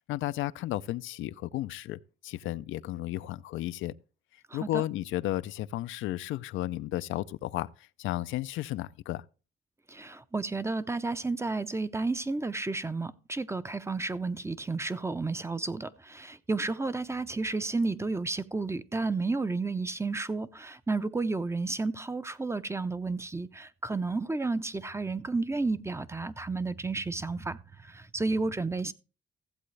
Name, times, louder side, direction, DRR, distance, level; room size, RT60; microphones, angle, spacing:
voice 1, 0.0-3.9 4.5-9.2, left 15 dB, 80° left, 0.4 m, -33 dB
voice 2, 4.5-4.8 9.9-28.9, right 3 dB, 15° right, 0.6 m, -32 dB
15.0 x 7.7 x 3.2 m
cardioid pair, 90°, 20 cm